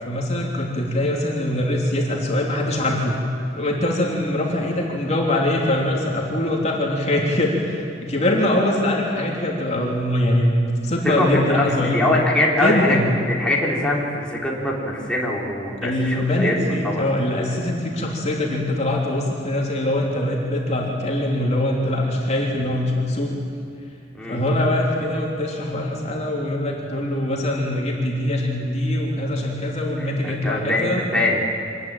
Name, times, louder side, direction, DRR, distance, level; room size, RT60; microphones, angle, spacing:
voice 1, 0.0-3.2 3.5-12.1 12.5-13.0 15.8-23.3 24.3-31.0, left 1 dB, 40° left, -1 dB, 3.3 m, -23 dB
voice 2, 11.0-16.5 16.8-17.0 24.1-24.4 30.0-31.5, left 1 dB, 5° left, -4 dB, 4.0 m, -23 dB
25.5 x 20.5 x 9.0 m, 2.4 s
head